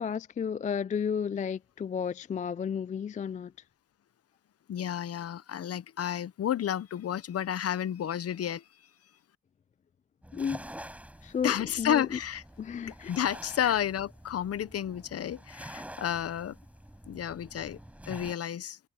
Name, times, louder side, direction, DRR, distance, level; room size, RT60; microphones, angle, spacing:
voice 1, 0.0-3.5 10.3-10.7 11.2-12.1 12.6-13.1 13.6-13.7, left 7 dB, 25° left, 0.4 m, -33 dB
voice 2, 4.7-8.6 11.4-12.4 13.1-16.6 17.1-17.8 18.1-18.8, left 10 dB, 50° left, 0.9 m, -31 dB
sound 1, 10.2-18.3, right 1 dB, 5° right, 6.9 m, -47 dB
cardioid pair, 90°, 30 cm